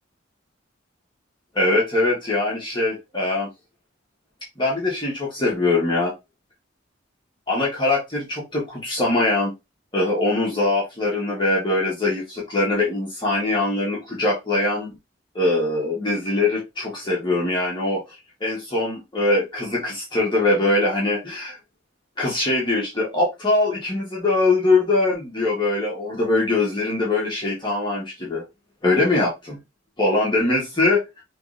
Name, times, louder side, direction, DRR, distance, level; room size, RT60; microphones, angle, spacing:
voice 1, 1.5-3.5 4.6-6.1 7.5-9.5 9.9-14.9 15.3-18.0 18.4-21.6 22.2-28.4 28.8-29.6 30.0-31.0, left 2 dB, 25° left, -4 dB, 1.3 m, -22 dB
4.8 x 3.1 x 2.5 m, 0.23 s
head